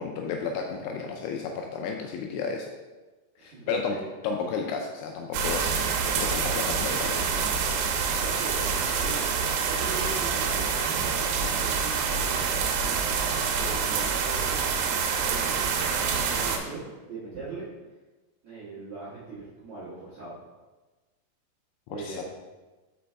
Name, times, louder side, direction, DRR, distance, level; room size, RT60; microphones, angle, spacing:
voice 1, 0.0-2.7 3.4-4.0 4.2-7.2 22.0-22.2, left 5 dB, 85° left, 2 dB, 2.7 m, -32 dB
voice 2, 3.4-4.1 7.1-7.6 7.9-15.7 16.0-17.7 18.4-20.3 21.9-22.2, right 3 dB, 70° right, -11 dB, 1.7 m, -41 dB
sound 1, 5.3-16.6, right 6 dB, 90° right, 3.2 m, -27 dB
6.1 x 5.1 x 3.4 m, 1.2 s
omnidirectional pair, 5.7 m